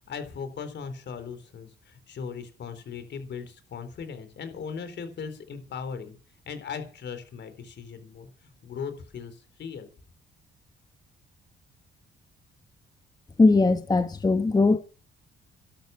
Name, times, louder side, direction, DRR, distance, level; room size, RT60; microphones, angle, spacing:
voice 1, 0.1-6.2 6.5-8.3 8.6-9.9, left 6 dB, 60° left, 4.0 m, -38 dB
voice 2, 13.4-14.8, left 3 dB, 20° left, 1.1 m, -20 dB
12.0 x 11.5 x 7.6 m
cardioid pair, 90°, 20 cm